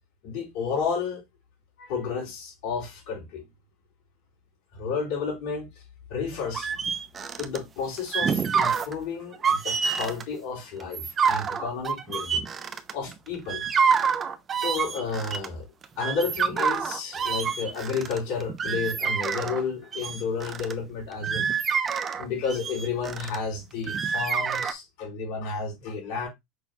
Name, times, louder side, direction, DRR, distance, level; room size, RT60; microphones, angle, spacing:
voice 1, 0.2-1.2 1.8-3.4 4.7-5.7 6.1-6.7 7.4-12.4 12.9-13.9 14.5-15.7 16.0-21.5 22.2-26.3, left 5 dB, 65° left, 3.8 m, -31 dB
sound 1, 6.5-7.6 8.0-8.9 9.3-10.2 10.8-13.1 13.5-15.5 15.8-19.6 19.9-20.7 21.1-23.4 23.9-24.7, right 6 dB, 30° right, 0.6 m, -27 dB
6.0 x 3.8 x 2.3 m
hypercardioid pair, 100°, 0 cm